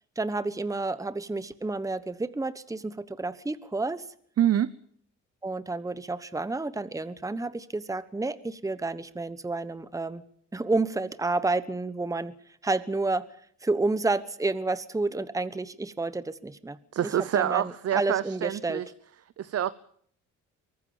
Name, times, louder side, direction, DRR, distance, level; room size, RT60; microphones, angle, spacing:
voice 1, 0.2-4.0 5.4-10.2 10.5-12.3 12.6-13.2 13.6-17.1 17.3-18.8, right 3 dB, 10° right, 14 dB, 1.2 m, -30 dB
voice 2, 4.4-4.7 16.9-18.9 19.4-19.7, right 10 dB, 55° right, 16 dB, 0.9 m, -26 dB
24.0 x 19.0 x 7.3 m, 0.63 s
cardioid pair, 90°, 30 cm